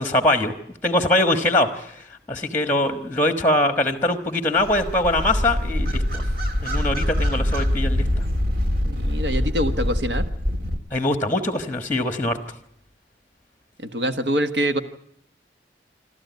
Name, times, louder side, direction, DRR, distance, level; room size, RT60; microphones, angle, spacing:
voice 1, 0.0-6.2 6.6-8.1 10.9-12.4, left 1 dB, 10° left, 8 dB, 1.3 m, -22 dB
sound 1, 4.6-10.8, equal, 55° right, 1.6 m, -24 dB
voice 2, 8.8-10.2 13.8-14.8, equal, 75° right, 8 dB, 1.4 m, -24 dB
27.0 x 13.0 x 9.4 m, 0.71 s
head